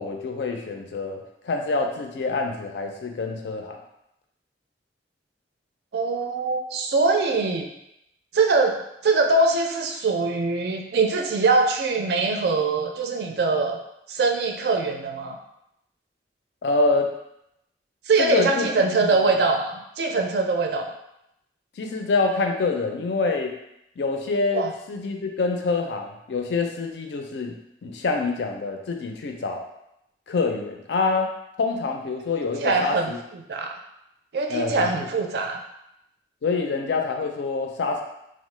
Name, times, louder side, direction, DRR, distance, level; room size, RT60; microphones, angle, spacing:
voice 1, 0.0-3.8 16.6-17.1 18.2-18.7 19.0-19.1 21.8-23.5 24.0-27.6 27.8-29.6 30.3-31.3 31.6-33.2 34.5-35.0 36.4-38.0, left 3 dB, 75° left, 3 dB, 0.4 m, -26 dB
voice 2, 5.9-7.7 8.3-13.8 14.1-15.4 18.1-20.9 24.5-24.7 32.6-33.1 33.5-33.7 34.3-35.6, right 3 dB, 60° right, 3 dB, 0.4 m, -23 dB
3.0 x 2.1 x 3.1 m, 0.81 s
head